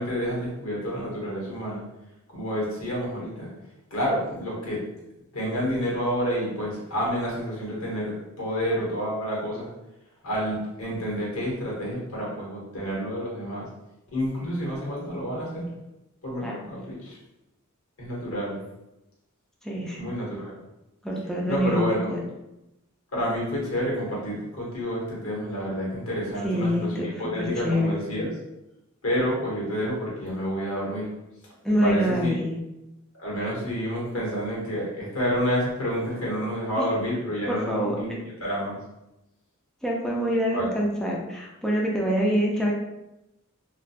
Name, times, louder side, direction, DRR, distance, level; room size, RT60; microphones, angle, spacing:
voice 1, 0.0-1.8 2.3-3.5 3.9-4.8 5.3-9.7 10.2-13.7 14.1-15.7 16.2-17.2 18.0-18.6 20.0-20.5 21.5-22.1 23.1-28.3 29.0-31.1 31.8-32.4 33.2-38.8 40.5-40.7, equal, 80° left, -4 dB, 1.0 m, -29 dB
voice 2, 19.6-20.1 21.0-22.2 26.4-27.1 27.4-28.0 31.6-32.6 36.8-36.9 37.5-38.0 39.8-42.7, equal, 5° left, -3 dB, 0.3 m, -25 dB
2.6 x 2.2 x 2.3 m, 0.92 s
head